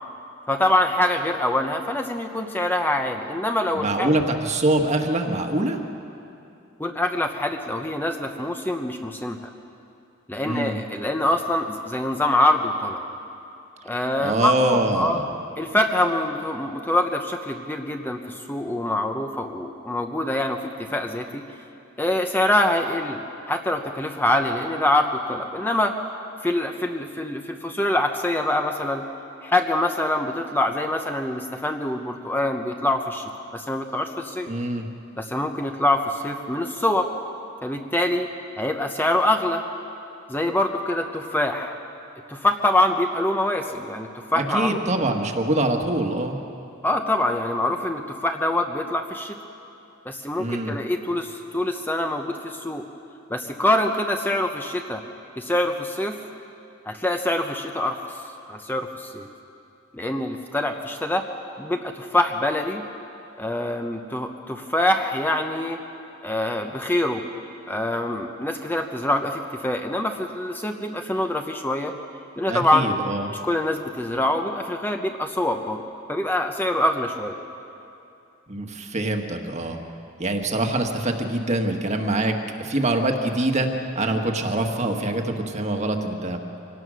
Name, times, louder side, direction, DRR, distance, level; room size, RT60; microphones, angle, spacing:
voice 1, 0.5-4.1 6.8-9.4 10.3-13.0 13.8-15.2 15.6-21.4 22.0-23.2 23.5-25.9 26.4-29.0 29.4-34.5 35.2-37.1 37.6-38.3 38.6-39.6 40.3-41.8 42.3-44.8 46.8-49.3 50.0-52.8 53.3-55.0 55.4-56.2 56.9-58.0 58.5-59.3 59.9-61.2 61.6-62.8 63.4-65.8 66.2-67.2 67.7-71.9 72.4-72.9 73.3-75.8 76.1-77.3, left 1 dB, 10° left, 4 dB, 0.8 m, -24 dB
voice 2, 3.7-5.8 10.4-10.8 14.2-15.3 34.5-34.8 44.3-46.4 50.4-50.7 72.5-73.3 78.5-79.8 80.2-83.7 83.9-86.6, right 2 dB, 35° right, 4 dB, 1.5 m, -24 dB
25.5 x 17.5 x 6.3 m, 2.7 s
head